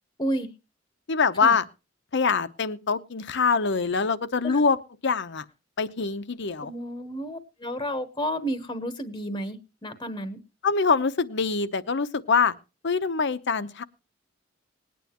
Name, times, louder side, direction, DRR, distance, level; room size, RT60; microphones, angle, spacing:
voice 1, 0.2-0.5 1.4-1.6 4.4-4.6 6.6-10.4, equal, 20° left, 10 dB, 1.0 m, -31 dB
voice 2, 1.1-1.6 2.1-4.8 5.0-5.4 5.8-6.7 10.6-12.5 12.8-13.8, left 5 dB, 60° left, 13 dB, 0.8 m, -24 dB
20.0 x 9.3 x 2.9 m, 0.29 s
head